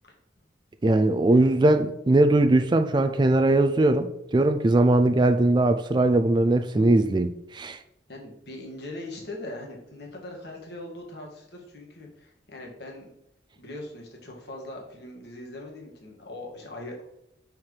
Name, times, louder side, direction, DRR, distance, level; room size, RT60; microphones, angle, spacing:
voice 1, 0.8-7.8, right 2 dB, 25° right, 0.3 m, -20 dB
voice 2, 8.1-13.1 13.5-17.0, left 1 dB, 60° left, 1.7 m, -40 dB
5.6 x 4.5 x 4.8 m
head